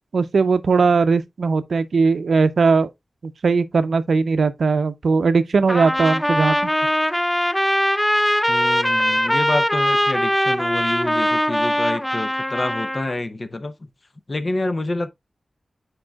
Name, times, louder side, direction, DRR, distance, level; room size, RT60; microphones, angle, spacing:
voice 1, 0.1-2.9 3.4-6.7, right 4 dB, 85° right, 0.5 m, -19 dB
Trumpet, 5.7-13.1, equal, 5° left, 0.4 m, -21 dB
voice 2, 8.5-13.7 14.3-15.1, left 2 dB, 45° left, 0.7 m, -27 dB
8.7 x 4.7 x 2.3 m
wide cardioid pair, 85°, 0 cm